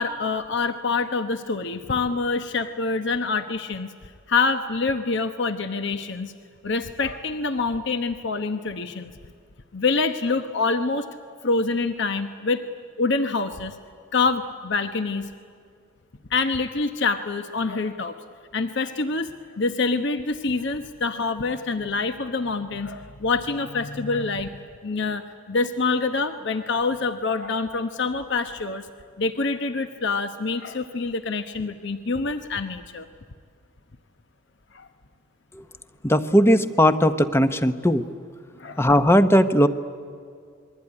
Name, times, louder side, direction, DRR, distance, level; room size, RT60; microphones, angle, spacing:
voice 1, 0.0-3.9 4.3-6.3 6.6-9.1 9.7-11.1 11.4-12.6 13.0-13.8 14.1-15.3 16.3-18.1 18.5-28.9 29.2-33.1 34.7-34.9 38.6-38.9, left 4 dB, 55° left, 9 dB, 1.0 m, -26 dB
voice 2, 36.0-38.1 38.8-39.7, equal, 10° left, 11 dB, 0.9 m, -18 dB
28.0 x 22.0 x 9.8 m, 2.3 s
head